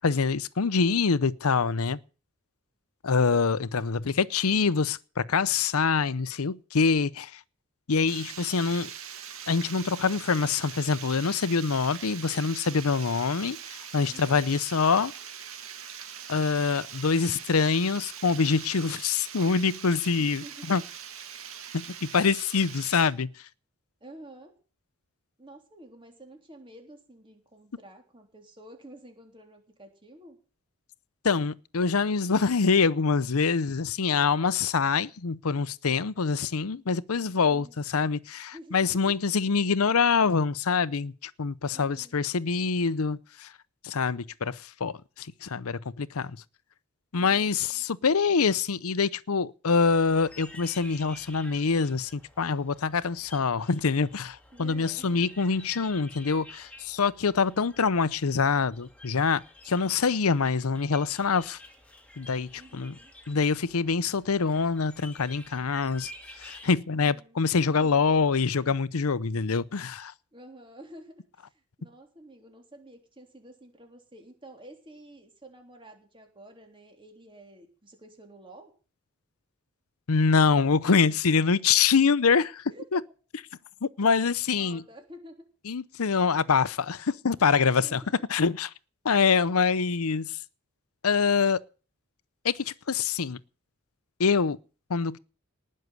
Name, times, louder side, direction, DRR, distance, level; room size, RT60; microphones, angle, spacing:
voice 1, 0.0-2.0 3.0-7.4 7.9-8.9 9.5-15.1 16.3-20.8 21.7-23.3 31.2-43.5 43.8-46.3 47.1-61.6 62.2-62.9 63.3-66.1 66.4-70.1 80.1-83.0 83.8-84.8 85.7-88.0 88.3-88.7 89.0-90.4 91.0-91.6 92.4-93.4 94.2-94.6 94.9-95.2, left 5 dB, 80° left, 0.7 m, -25 dB
Water, 8.1-23.1, right 8 dB, 70° right, 2.2 m, -42 dB
voice 2, 14.1-14.6 20.2-20.8 24.0-24.5 25.4-30.4 37.5-37.8 38.5-39.2 41.7-42.2 47.2-47.8 54.5-55.3 62.6-63.1 66.9-68.0 70.3-78.7 82.7-82.9 84.6-85.5 87.8-88.1, right 1 dB, 25° right, 3.5 m, -50 dB
sound 1, 49.8-66.7, left 1 dB, 5° left, 2.5 m, -50 dB
19.0 x 6.6 x 9.3 m
head